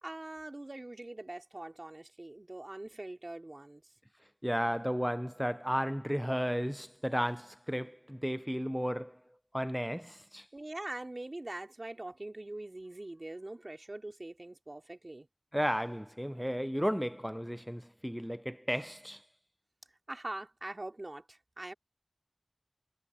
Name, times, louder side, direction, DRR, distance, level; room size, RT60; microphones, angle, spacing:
voice 1, 0.0-3.8 10.5-15.3 20.1-21.7, right 2 dB, 60° right, 2.6 m, -43 dB
voice 2, 4.4-9.2 9.5-10.5 15.5-19.3, equal, 5° right, 0.3 m, -33 dB
wide cardioid pair, 45°, 0 cm